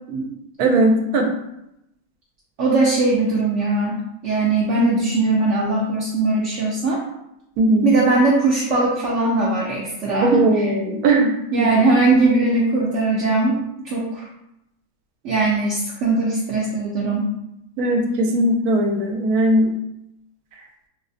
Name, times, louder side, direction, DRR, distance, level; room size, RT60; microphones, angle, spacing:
voice 1, 0.6-1.3 7.6-7.9 10.2-11.7 17.8-19.8, right 1 dB, 80° right, 3 dB, 1.1 m, -18 dB
voice 2, 2.6-4.0 4.2-7.0 7.8-10.7 11.5-13.6 13.8-14.2 15.2-17.3, right 3 dB, 65° right, -4 dB, 0.8 m, -20 dB
4.0 x 2.0 x 2.6 m, 0.83 s
omnidirectional pair, 1.6 m